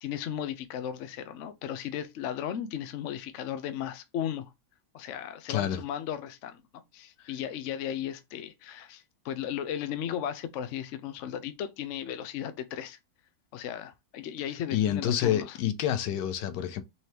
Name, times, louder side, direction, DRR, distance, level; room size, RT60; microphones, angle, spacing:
voice 1, 0.0-4.5 4.9-6.6 6.9-13.0 13.5-15.6, left 10 dB, 65° left, 0.7 m, -35 dB
voice 2, 5.5-5.8 14.5-16.8, left 10 dB, 80° left, 1.3 m, -28 dB
4.2 x 3.2 x 2.8 m
omnidirectional pair, 1.8 m